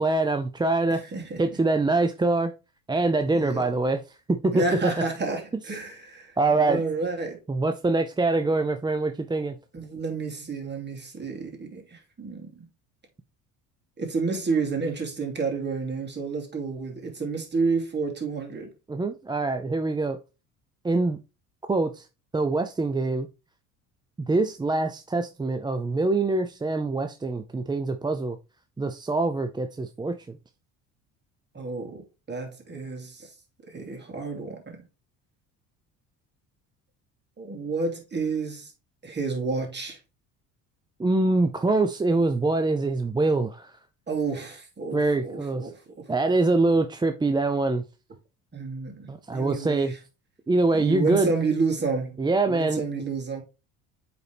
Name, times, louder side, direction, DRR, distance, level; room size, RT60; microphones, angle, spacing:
voice 1, 0.0-1.0 1.4-2.5 2.9-4.0 4.3-4.9 6.4-6.8 7.5-9.6 18.9-20.2 20.8-21.2 21.7-22.1 22.3-23.3 24.3-28.4 28.8-30.4 41.0-43.8 44.9-45.7 46.1-47.8 49.1-49.9 50.5-51.3 52.2-52.8, right 3 dB, 10° right, 0.5 m, -24 dB
voice 2, 0.9-1.4 3.3-3.7 4.5-7.4 9.7-12.7 14.0-18.7 31.5-32.0 32.3-33.3 33.7-34.8 37.4-38.7 39.0-40.0 44.1-46.0 48.5-50.0 50.8-52.2 52.5-53.4, right 4 dB, 30° right, 2.8 m, -30 dB
8.2 x 4.3 x 3.4 m
supercardioid pair, 85°, 37 cm